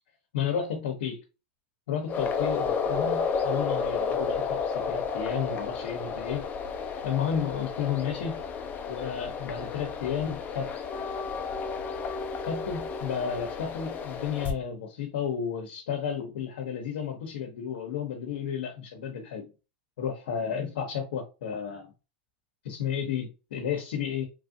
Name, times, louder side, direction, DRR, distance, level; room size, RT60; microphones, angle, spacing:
voice 1, 0.3-1.2 1.9-6.5 7.0-8.4 8.9-10.7 12.4-19.5 20.0-21.9 22.6-24.3, left 7 dB, 85° left, 0.7 m, -32 dB
sound 1, 2.1-14.5, left 5 dB, 30° left, 0.5 m, -32 dB
3.0 x 2.4 x 2.6 m
supercardioid pair, 125°, 6 cm